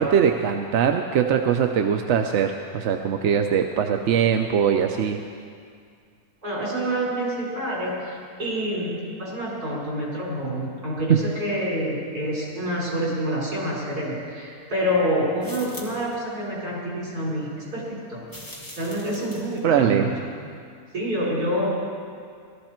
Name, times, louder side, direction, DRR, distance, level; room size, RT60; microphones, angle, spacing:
voice 1, 0.0-5.2 19.6-20.1, right 7 dB, 60° right, 5 dB, 0.8 m, -21 dB
voice 2, 6.4-18.2 18.8-20.1 20.9-21.7, equal, 80° right, -6 dB, 5.2 m, -27 dB
sound 1, 15.4-16.1 18.3-19.6, left 1 dB, 15° left, 2.3 m, -41 dB
18.5 x 13.5 x 4.4 m, 2.2 s
omnidirectional pair, 1.6 m